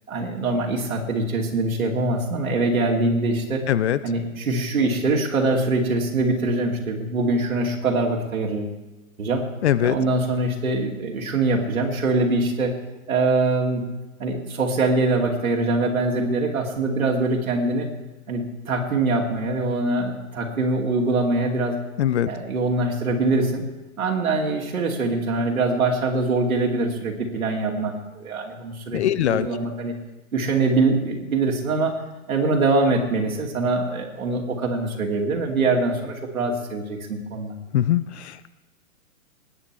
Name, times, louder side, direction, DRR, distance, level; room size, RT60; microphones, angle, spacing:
voice 1, 0.1-3.7 4.0-8.8 9.2-9.5 9.8-12.8 13.1-13.9 14.2-17.9 18.3-21.8 22.3-23.6 24.0-29.0 29.3-29.9 30.3-31.9 32.3-37.5, right 2 dB, 75° right, 0 dB, 2.6 m, -23 dB
voice 2, 3.7-4.0 9.6-10.0 22.0-22.3 28.9-29.5 37.7-38.5, left 11 dB, 50° left, 16 dB, 0.7 m, -21 dB
19.0 x 9.1 x 4.6 m, 1.1 s
hypercardioid pair, 125°, 42 cm